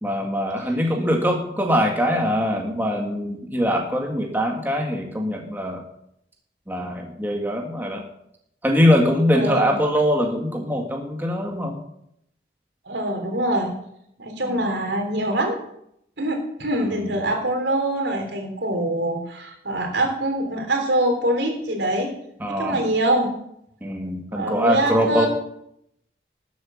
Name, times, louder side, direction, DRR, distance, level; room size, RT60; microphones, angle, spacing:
voice 1, 0.0-5.8 6.7-8.0 8.6-11.8 14.4-14.7 16.8-17.1 22.4-22.8 23.8-25.3, equal, 10° right, 1 dB, 1.8 m, -22 dB
voice 2, 9.3-9.7 12.9-13.7 14.2-15.6 16.2-22.1 22.5-23.3 24.3-25.3, right 1 dB, 85° right, 3 dB, 3.5 m, -24 dB
12.0 x 8.0 x 7.2 m, 0.75 s
head